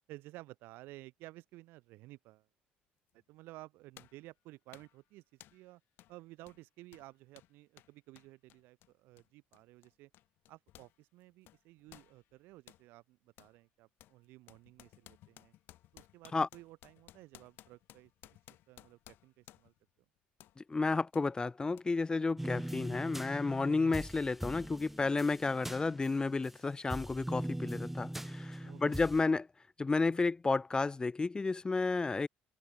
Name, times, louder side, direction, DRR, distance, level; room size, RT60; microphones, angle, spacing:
voice 1, 0.1-2.5 3.3-5.8 6.1-10.1 10.5-15.5 15.9-18.4 18.7-19.7 28.6-29.1, right 19 dB, 80° right, 4.3 m, -54 dB
sound 1, 3.1-3.2 4.0-4.3 4.7-5.0 5.4-5.7 6.0-6.2 6.4-11.0 11.2-12.9 13.4-13.6 14.0-19.8 20.4-20.6 21.1-21.3 21.8-21.9, left 15 dB, 70° left, 7.5 m, -59 dB
voice 2, 20.6-29.5 29.8-32.3, left 3 dB, 20° left, 1.5 m, -32 dB
sound 2, 22.4-26.6 26.9-29.2, right 1 dB, 5° right, 2.8 m, -41 dB
open air
supercardioid pair, 85°, 4 cm